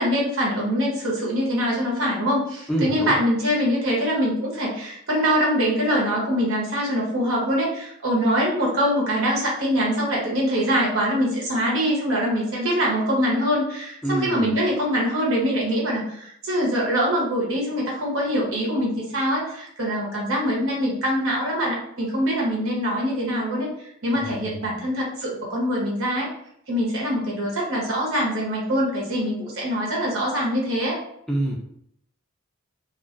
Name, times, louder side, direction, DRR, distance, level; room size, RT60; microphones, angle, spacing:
voice 1, 0.0-23.7 24.0-26.3 26.7-31.0, equal, 70° right, -3 dB, 0.9 m, -23 dB
voice 2, 2.7-3.2 14.0-14.6 24.2-24.7 31.3-31.6, right 1 dB, ahead, -3 dB, 0.4 m, -27 dB
2.3 x 2.3 x 2.4 m, 0.71 s
head